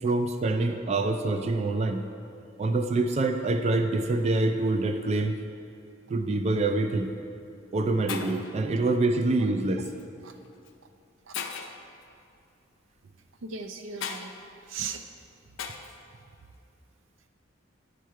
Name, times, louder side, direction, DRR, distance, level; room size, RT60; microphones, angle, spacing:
voice 1, 0.0-2.0 2.6-5.3 6.1-7.1 7.7-9.9, right 2 dB, 35° right, 7 dB, 0.3 m, -26 dB
Shatter, 6.9-7.1 7.8-7.9 8.1-8.5 9.8-10.0 10.7-10.8 11.3-11.9 14.0-14.3 15.6-16.0, left 7 dB, 75° left, 0.5 m, -36 dB
voice 2, 13.4-14.3 14.7-15.0, right 5 dB, 90° right, 7 dB, 0.6 m, -37 dB
10.0 x 4.9 x 4.5 m, 2.5 s
head